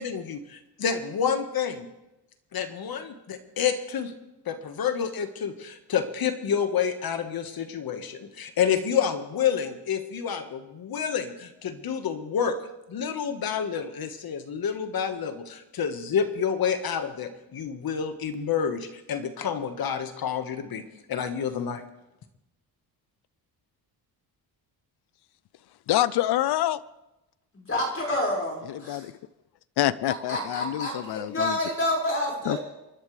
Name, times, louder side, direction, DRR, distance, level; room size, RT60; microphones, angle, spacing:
voice 1, 0.0-1.9 2.5-4.1 4.4-12.6 12.9-20.8 21.1-21.8, left 7 dB, 65° left, 7 dB, 1.6 m, -29 dB
voice 2, 25.9-26.8 28.7-29.1 29.8-31.6 32.5-32.6, left 13 dB, 80° left, 18 dB, 0.6 m, -26 dB
voice 3, 27.5-29.0 30.3-32.6, left 1 dB, 35° left, -2 dB, 5.6 m, -28 dB
30.0 x 11.5 x 3.4 m, 0.97 s
cardioid pair, 105°, 39 cm